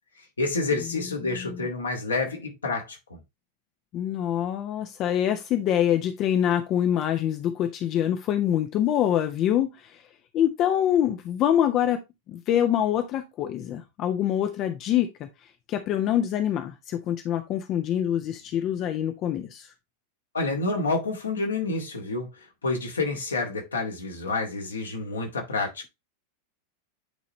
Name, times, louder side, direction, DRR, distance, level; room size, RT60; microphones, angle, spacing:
voice 1, 0.4-3.2 20.3-22.3 22.6-25.9, left 3 dB, 75° left, 2.0 m, -28 dB
voice 2, 1.2-1.7 3.9-10.0 10.3-12.0 12.3-15.3 15.7-19.7, left 10 dB, 35° left, 0.9 m, -25 dB
9.2 x 4.1 x 3.1 m
figure-of-eight pair, 90°, 0 cm